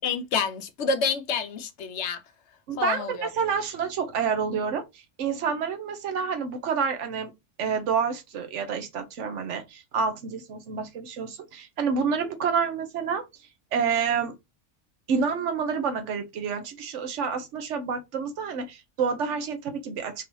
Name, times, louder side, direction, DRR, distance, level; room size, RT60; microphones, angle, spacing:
voice 1, 0.0-2.2 2.8-3.3, left 5 dB, 65° left, 0.9 m, -28 dB
voice 2, 2.7-7.3 7.6-13.2 13.7-14.3 15.1-20.2, right 6 dB, 75° right, 1.1 m, -28 dB
3.8 x 2.8 x 3.0 m
omnidirectional pair, 1.3 m